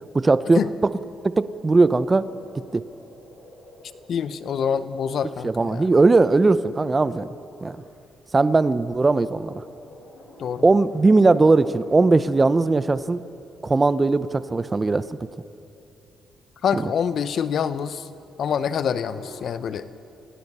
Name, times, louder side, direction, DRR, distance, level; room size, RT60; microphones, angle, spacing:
voice 1, 0.1-0.6 1.2-2.2 2.7-2.8 5.4-7.3 7.6-7.8 8.3-9.6 10.6-13.2 13.6-15.0 16.7-16.8, right 3 dB, 25° right, 14 dB, 0.7 m, -19 dB
sound 1, 1.9-4.6 5.3-5.4 5.6-5.8 6.1-13.5 15.2-15.3 16.2-16.6 17.7-19.3, left 1 dB, 80° left, 6.5 m, -50 dB
voice 2, 4.1-5.9 10.4-10.6 16.6-18.1 18.4-19.9, left 7 dB, 60° left, 13 dB, 0.7 m, -26 dB
29.0 x 17.0 x 5.6 m, 2.7 s
cardioid pair, 90°, 0 cm